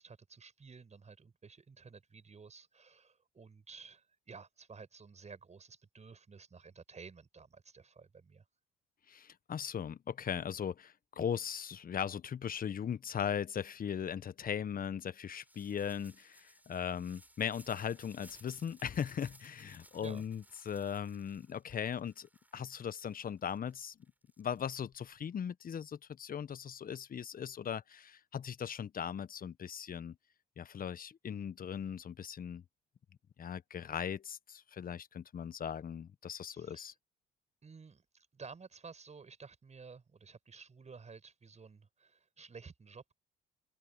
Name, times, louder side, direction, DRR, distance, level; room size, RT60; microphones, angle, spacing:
voice 1, 0.0-8.4 20.0-20.2 36.5-36.9 37.6-43.1, right 5 dB, 35° right, 6.6 m, -53 dB
voice 2, 9.1-24.0 24.4-30.2 30.6-32.6 33.4-36.9, left 8 dB, 45° left, 1.5 m, -39 dB
sound 1, 15.2-25.1, right 1 dB, 10° right, 7.6 m, -62 dB
open air
hypercardioid pair, 55°, 20 cm